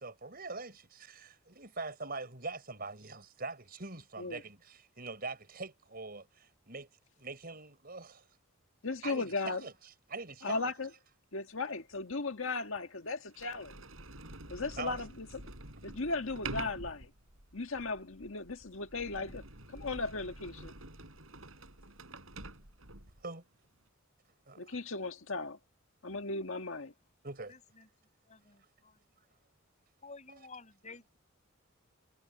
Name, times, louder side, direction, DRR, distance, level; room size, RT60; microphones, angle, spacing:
voice 1, 0.0-6.9 7.2-8.2 9.0-10.7 14.8-15.0 23.2-23.4 24.5-24.8 27.2-27.6 30.3-30.4, right 3 dB, 45° right, 5.2 m, -43 dB
voice 2, 8.8-9.6 10.4-10.9 11.3-13.7 14.5-15.3 15.8-17.1 17.5-19.4 19.7-20.7 24.6-25.6 26.0-26.9, left 3 dB, 70° left, 1.8 m, -36 dB
Sliding door, 11.9-12.0 12.8-12.9 13.3-23.2, right 2 dB, 75° right, 7.5 m, -47 dB
voice 3, 27.5-27.9 28.2-29.0 30.0-31.2, left 4 dB, 35° left, 6.2 m, -52 dB
head